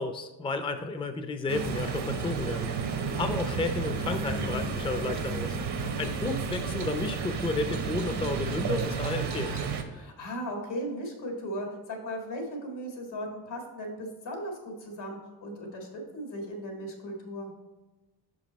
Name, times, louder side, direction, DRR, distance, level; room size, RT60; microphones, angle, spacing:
voice 1, 0.0-2.7 3.2-5.6 6.0-9.7, left 3 dB, 15° left, 8 dB, 0.4 m, -32 dB
sound 1, 1.5-9.8, right 5 dB, 70° right, 1.0 m, -32 dB
voice 2, 2.9-3.2 5.8-5.9 9.9-15.9 16.1-17.5, equal, 85° left, 1 dB, 1.9 m, -37 dB
5.8 x 5.3 x 4.1 m, 1.2 s
cardioid pair, 100°, 42 cm